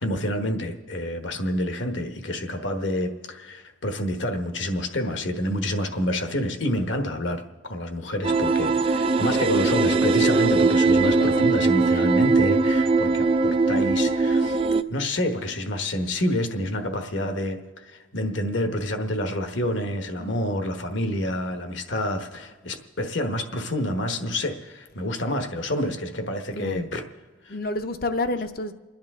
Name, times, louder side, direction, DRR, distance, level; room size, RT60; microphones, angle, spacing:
voice 1, 0.0-14.6 14.9-27.0 27.4-27.6, left 1 dB, 65° left, 6 dB, 1.2 m, -28 dB
sound 1, 8.2-14.8, right 3 dB, 25° right, 0.3 m, -20 dB
voice 2, 11.0-11.6 11.9-12.0 20.2-20.5 26.5-26.9 27.5-28.7, left 2 dB, 45° left, 9 dB, 0.7 m, -30 dB
29.0 x 10.5 x 3.7 m, 1.4 s
head